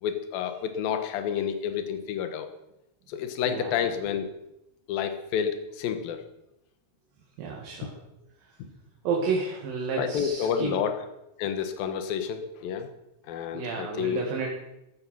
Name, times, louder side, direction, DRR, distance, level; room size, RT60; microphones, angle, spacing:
voice 1, 0.0-2.5 3.1-4.3 4.9-6.2 7.8-7.9 10.0-11.1 11.4-12.9 13.3-14.2, left 8 dB, 70° left, 8 dB, 2.9 m, -29 dB
voice 2, 7.4-7.9 9.1-10.8 13.5-14.5, right 5 dB, 65° right, -1 dB, 3.5 m, -30 dB
15.0 x 12.5 x 5.6 m, 0.88 s
omnidirectional pair, 4.4 m